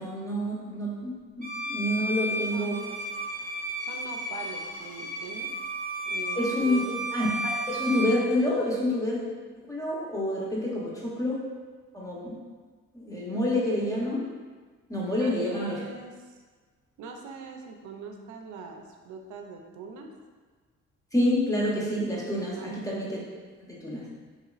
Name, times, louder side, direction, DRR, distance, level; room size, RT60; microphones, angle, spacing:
voice 1, 0.0-2.8 6.4-6.8 7.1-9.2 9.7-11.4 11.9-12.4 12.9-14.2 14.9-15.8 21.1-23.2 23.7-24.1, left 1 dB, 10° left, -5 dB, 0.8 m, -28 dB
Bowed string instrument, 1.4-8.2, right 1 dB, 30° right, 0.6 m, -33 dB
voice 2, 2.3-3.0 3.9-5.5 6.1-7.0 10.7-10.9 15.2-16.4 17.0-20.1 22.6-22.7, right 5 dB, 75° right, 3 dB, 0.5 m, -42 dB
3.0 x 3.0 x 2.4 m, 1.4 s
cardioid pair, 90°, 30 cm